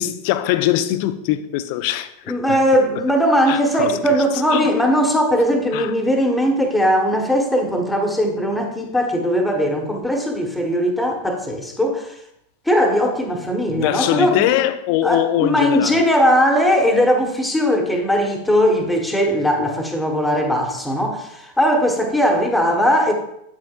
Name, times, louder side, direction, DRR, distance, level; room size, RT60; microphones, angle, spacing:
voice 1, 0.0-2.1 2.5-2.6 3.5-4.0 4.5-4.8 5.7-5.9 13.7-16.0, left 13 dB, 45° left, 0.5 m, -21 dB
voice 2, 2.3-12.2 12.6-14.5 15.0-23.1, equal, 5° left, 1.3 m, -19 dB
8.7 x 7.5 x 2.4 m
figure-of-eight pair, 90°, 0 cm